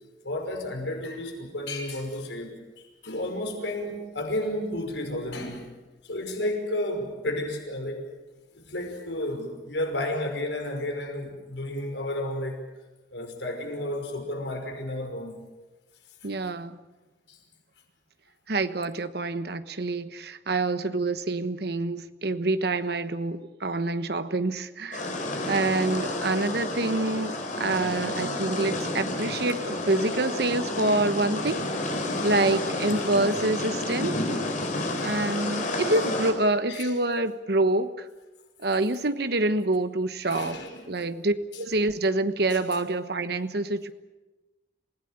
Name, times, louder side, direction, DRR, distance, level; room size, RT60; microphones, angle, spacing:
voice 1, 0.2-5.8 6.0-8.1 8.5-12.6 13.1-15.4 17.3-17.4 30.9-31.0 33.0-33.1 34.8-35.2 36.7-36.9 38.7-38.8 40.2-40.9 42.5-42.6, left 1 dB, 85° left, 5.5 m, -32 dB
voice 2, 16.2-16.8 18.5-25.1 25.5-31.9 32.2-34.2 35.0-38.1 38.6-43.9, right 2 dB, 60° right, 1.2 m, -27 dB
sound 1, 24.9-36.3, left 1 dB, 45° left, 4.7 m, -30 dB
27.5 x 17.0 x 9.1 m
head